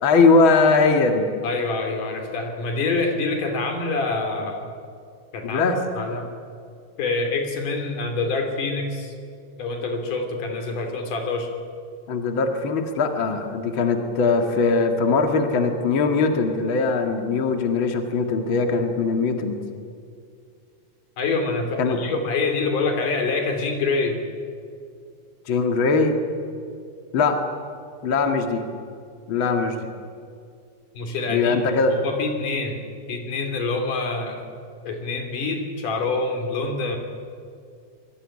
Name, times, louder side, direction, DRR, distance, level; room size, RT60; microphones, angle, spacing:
voice 1, 0.0-1.2 5.4-5.8 12.1-19.6 21.8-22.0 25.5-26.2 27.1-27.3 28.0-28.6 29.3-29.7 31.3-31.9, left 4 dB, 75° left, 5 dB, 1.1 m, -20 dB
voice 2, 1.4-4.7 5.3-6.3 7.0-9.1 9.6-11.5 21.2-24.2 30.9-31.6 31.9-32.8 33.1-34.5 34.8-37.0, left 3 dB, 45° left, 4 dB, 3.9 m, -26 dB
25.5 x 22.0 x 9.9 m, 2.3 s
omnidirectional pair, 5.9 m